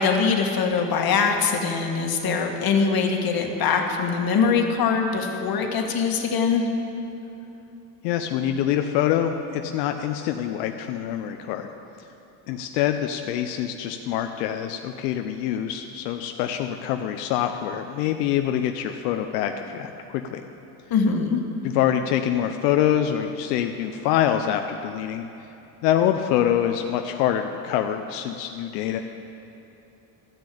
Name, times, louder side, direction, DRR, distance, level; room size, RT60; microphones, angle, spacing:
voice 1, 0.0-6.6 20.9-21.4, left 5 dB, 50° left, 3 dB, 1.7 m, -22 dB
voice 2, 8.0-11.7 12.5-20.4 21.6-25.3 25.8-29.0, left 10 dB, 85° left, 6 dB, 0.7 m, -25 dB
13.5 x 6.3 x 8.5 m, 2.9 s
supercardioid pair, 85°, 47 cm